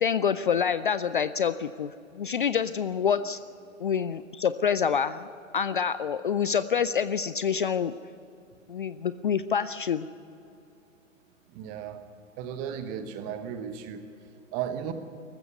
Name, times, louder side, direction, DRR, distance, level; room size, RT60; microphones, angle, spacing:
voice 1, 0.0-3.4 3.8-5.3 5.5-7.9 8.7-10.1, left 7 dB, 40° left, 14 dB, 0.5 m, -27 dB
voice 2, 11.5-12.0 12.4-14.0 14.5-14.9, right 9 dB, 20° right, 9 dB, 1.1 m, -35 dB
19.5 x 15.0 x 9.4 m, 2.6 s
figure-of-eight pair, 125°, 40 cm